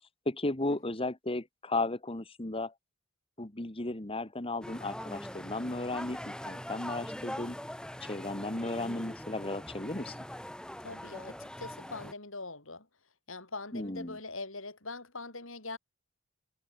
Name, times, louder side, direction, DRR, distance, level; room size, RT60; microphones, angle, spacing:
voice 1, 0.2-2.7 3.4-7.6 8.0-10.2 13.7-14.2, left 2 dB, 25° left, 1.6 m, -35 dB
sound 1, 4.6-12.1, equal, 5° left, 2.5 m, -42 dB
voice 2, 10.8-12.9 13.3-15.8, left 3 dB, 65° left, 6.4 m, -42 dB
head